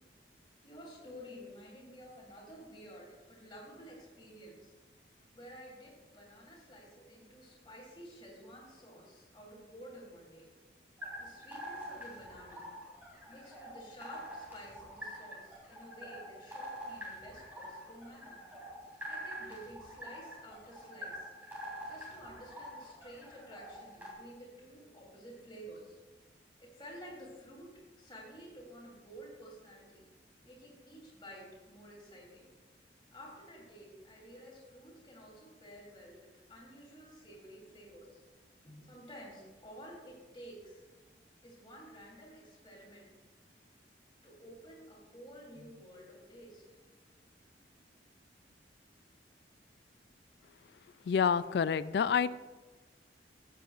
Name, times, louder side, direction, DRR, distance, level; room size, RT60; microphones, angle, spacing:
voice 1, 0.6-4.7 5.3-10.5 11.2-12.7 13.3-18.4 19.0-21.3 21.9-26.0 26.6-27.7 28.0-30.0 30.5-32.5 33.1-38.2 38.6-40.8 41.4-43.1 44.2-46.6, equal, 25° left, -4 dB, 3.4 m, -52 dB
sound 1, 11.0-24.1, equal, 10° right, 3.0 m, -46 dB
voice 2, 51.1-52.3, left 6 dB, 65° left, 16 dB, 0.3 m, -28 dB
14.5 x 8.4 x 2.5 m, 1.2 s
head